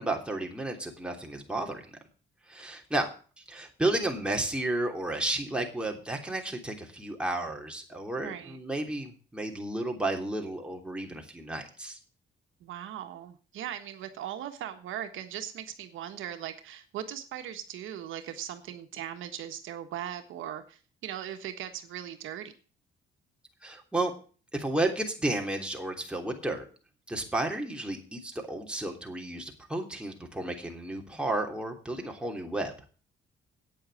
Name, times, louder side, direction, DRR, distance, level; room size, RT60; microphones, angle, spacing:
voice 1, 0.0-1.8 2.5-3.1 3.4-12.0 23.6-24.1 24.5-26.6 27.1-32.7, right 2 dB, 5° right, 1 dB, 3.2 m, -32 dB
voice 2, 8.2-8.6 12.6-22.5, right 10 dB, 85° right, 7 dB, 1.5 m, -39 dB
9.1 x 8.8 x 7.7 m, 0.39 s
cardioid pair, 90°, 20 cm